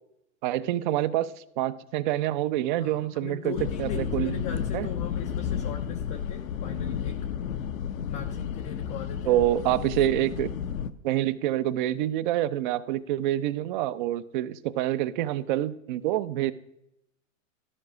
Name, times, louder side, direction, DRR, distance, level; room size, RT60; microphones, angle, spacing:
voice 1, 0.4-3.5 3.8-4.3 4.7-4.9 9.3-10.5 11.0-16.5, right 13 dB, 40° right, 16 dB, 0.5 m, -27 dB
voice 2, 2.8-7.2 8.1-9.4, left 7 dB, 20° left, 3 dB, 0.4 m, -39 dB
sound 1, 3.6-10.9, left 8 dB, 85° left, 0.8 m, -32 dB
13.0 x 4.8 x 6.1 m, 0.82 s
hypercardioid pair, 140°, 39 cm